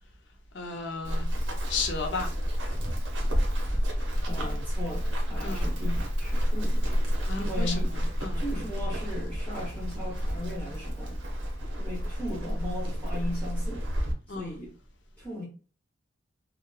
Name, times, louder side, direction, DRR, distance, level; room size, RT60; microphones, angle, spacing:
voice 1, 0.5-1.3 1.7-2.3 5.4-5.7 7.3-8.4 14.3-14.6, left 4 dB, 70° left, 0.6 m, -34 dB
Run, 1.0-14.1, equal, 75° right, 0.7 m, -29 dB
voice 2, 4.2-6.9 7.4-7.9 8.4-11.2 11.8-13.9 14.3-14.7 15.2-15.5, left 1 dB, 10° left, 0.9 m, -37 dB
2.8 x 2.1 x 2.3 m
head